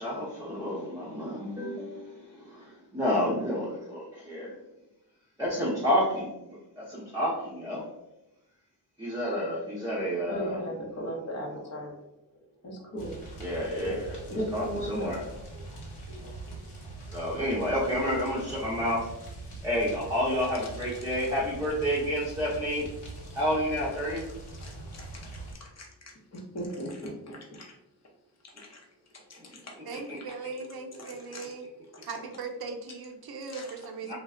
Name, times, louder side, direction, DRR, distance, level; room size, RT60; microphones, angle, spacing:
voice 1, 0.0-4.6 5.4-7.9 9.0-10.6 13.4-14.3 14.5-15.2 17.1-19.1 19.6-22.9 23.3-24.3 34.0-34.1, equal, 10° right, -6 dB, 0.6 m, -30 dB
voice 2, 10.3-12.1 12.6-13.2 13.8-13.9 14.3-15.7 16.0-16.7 21.1-21.3 23.2-23.4 24.5-27.8 28.6-28.7 29.3-30.0 30.3-30.4 31.0-31.5 33.5-33.7, equal, 40° left, -1 dB, 0.7 m, -39 dB
sound 1, 13.0-25.5, right 2 dB, 75° left, 1.1 m, -43 dB
voice 3, 29.9-31.6 32.0-34.1, right 4 dB, 60° right, 3 dB, 0.6 m, -39 dB
3.2 x 2.1 x 3.6 m, 0.90 s
wide cardioid pair, 150°, 42 cm